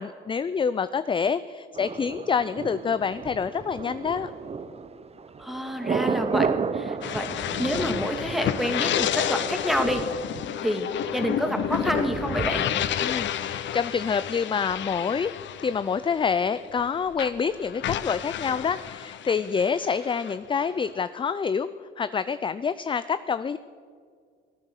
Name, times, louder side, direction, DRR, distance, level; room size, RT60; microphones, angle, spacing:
voice 1, 0.0-4.3 13.0-15.3 15.6-21.7 22.0-23.6, left 6 dB, 25° left, 14 dB, 0.4 m, -27 dB
Thunder, 1.8-13.6 13.9-14.0, right 5 dB, 30° right, 0.8 m, -33 dB
voice 2, 5.4-6.5 6.7-10.0 10.6-10.9 11.1-12.7, equal, ahead, 5 dB, 2.0 m, -28 dB
sound 1, 7.0-16.9 17.1-21.0, left 10 dB, 70° left, 0.7 m, -30 dB
17.5 x 9.7 x 6.6 m, 2.1 s
cardioid pair, 90°, 20 cm